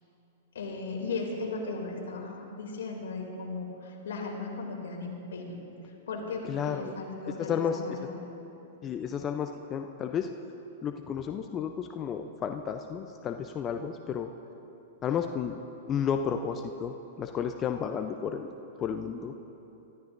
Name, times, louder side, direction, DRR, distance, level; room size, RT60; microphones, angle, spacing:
voice 1, 0.5-5.6 6.1-8.3, left 3 dB, 80° left, 0 dB, 2.7 m, -36 dB
voice 2, 6.4-6.9 7.5-7.8 8.8-10.3 10.8-14.3 15.0-15.6 15.9-18.5 18.8-19.3, left 7 dB, 25° left, 6 dB, 0.6 m, -32 dB
23.5 x 13.5 x 2.6 m, 2.9 s
hypercardioid pair, 125°, 0 cm